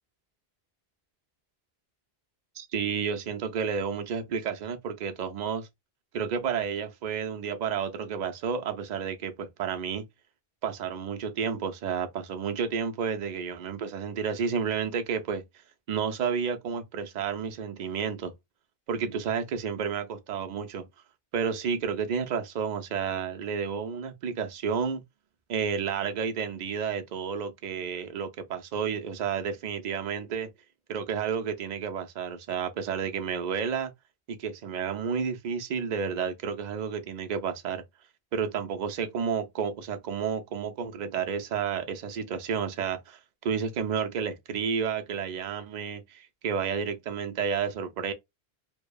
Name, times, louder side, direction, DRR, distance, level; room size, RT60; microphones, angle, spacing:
voice 1, 2.6-5.7 6.1-10.1 10.6-15.4 15.9-18.3 18.9-20.9 21.3-25.0 25.5-30.5 30.9-33.9 34.3-37.8 38.3-48.1, right 6 dB, 55° right, 0.5 m, -31 dB
2.7 x 2.1 x 2.2 m
omnidirectional pair, 1.1 m